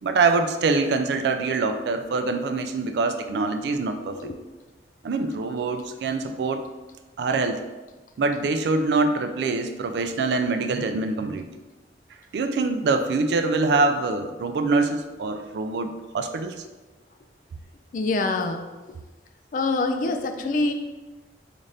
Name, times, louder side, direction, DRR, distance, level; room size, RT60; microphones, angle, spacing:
voice 1, 0.0-4.3 5.0-6.7 7.2-7.6 8.2-11.5 12.3-16.5, right 3 dB, 70° right, 7 dB, 0.3 m, -24 dB
voice 2, 17.9-18.7 19.5-20.7, left 3 dB, 50° left, 6 dB, 0.3 m, -25 dB
3.9 x 2.5 x 3.3 m, 1.2 s
head